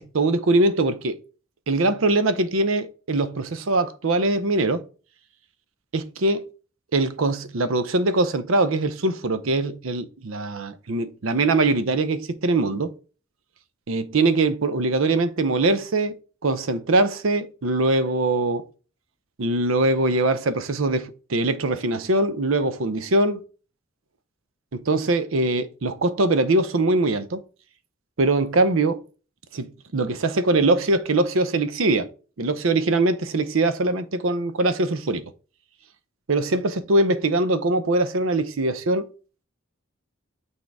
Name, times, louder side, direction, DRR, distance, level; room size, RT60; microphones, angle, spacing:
voice 1, 0.1-1.2 1.7-4.8 5.9-6.4 6.9-12.9 13.9-16.2 16.4-18.6 19.4-23.4 24.7-27.4 28.2-29.0 29.5-32.1 32.4-35.2 36.3-39.1, right 2 dB, 75° right, 0.7 m, -22 dB
6.4 x 3.6 x 4.7 m
head